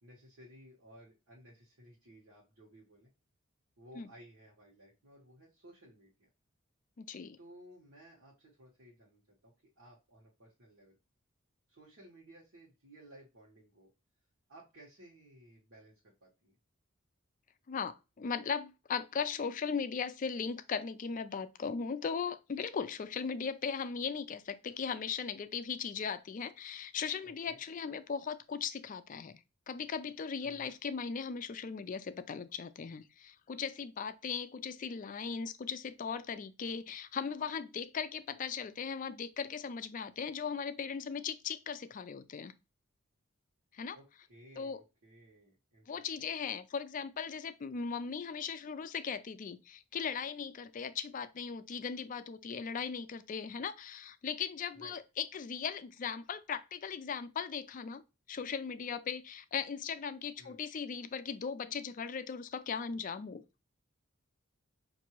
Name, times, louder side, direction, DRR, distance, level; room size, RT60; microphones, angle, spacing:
voice 1, 0.0-3.1 3.8-6.3 7.4-11.0 11.7-13.9 14.5-16.6 27.2-27.6 30.4-30.7 43.9-45.9 46.2-46.3 54.7-55.0 60.4-60.6, right 1 dB, 70° right, 1.2 m, -57 dB
voice 2, 7.0-7.4 17.7-29.3 29.7-42.5 43.7-44.0 44.6-44.8 45.9-58.0 58.3-63.4, left 6 dB, 40° left, 0.3 m, -38 dB
5.8 x 2.6 x 3.0 m
head